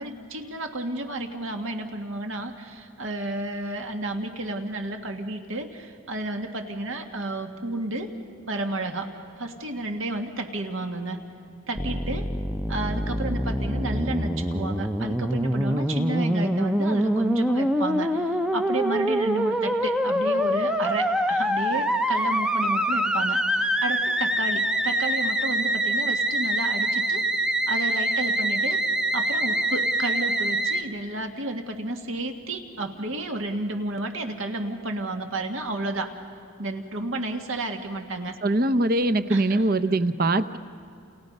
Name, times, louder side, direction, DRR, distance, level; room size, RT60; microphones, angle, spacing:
voice 1, 0.0-8.2 8.5-9.1 9.4-11.2 11.7-12.3 12.7-27.2 27.7-28.8 29.1-36.1 36.6-38.4 39.3-39.6, right 2 dB, 70° right, 4 dB, 1.9 m, -31 dB
Musical instrument, 11.8-30.8, right 1 dB, 5° right, 0.6 m, -25 dB
voice 2, 38.4-40.6, right 2 dB, 45° right, 12 dB, 0.8 m, -22 dB
30.0 x 29.5 x 5.4 m, 2.6 s
head